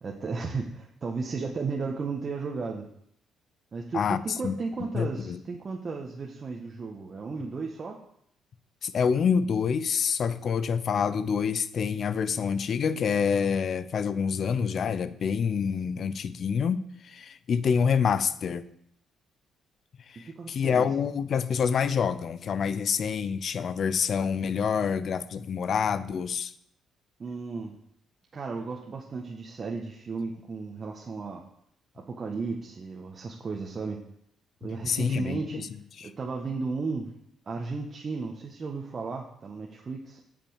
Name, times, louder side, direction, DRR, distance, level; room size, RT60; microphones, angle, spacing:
voice 1, 0.0-2.9 3.7-8.0 20.1-20.9 27.2-27.7 28.3-31.4 31.9-34.0 34.6-35.7 36.0-37.2 37.5-40.2, right 4 dB, 45° right, 1.5 m, -34 dB
voice 2, 3.9-4.5 4.9-5.4 8.8-18.6 20.1-26.5 34.9-35.6 36.0-36.1, left 6 dB, 55° left, 0.7 m, -27 dB
8.6 x 6.0 x 7.2 m
hypercardioid pair, 50°, 0 cm